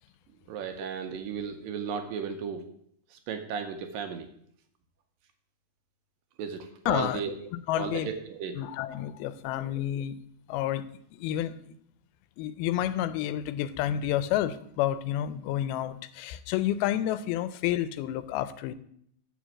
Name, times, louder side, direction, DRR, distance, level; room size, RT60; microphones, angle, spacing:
voice 1, 0.5-2.6 3.1-4.3 6.4-7.3 7.8-8.6, right 6 dB, 75° right, 2.3 m, -35 dB
voice 2, 6.9-7.2 7.5-8.1 8.6-10.2 10.5-10.8 11.1-11.7 12.4-18.7, left 12 dB, 90° left, 2.5 m, -30 dB
7.4 x 5.0 x 7.3 m
omnidirectional pair, 4.3 m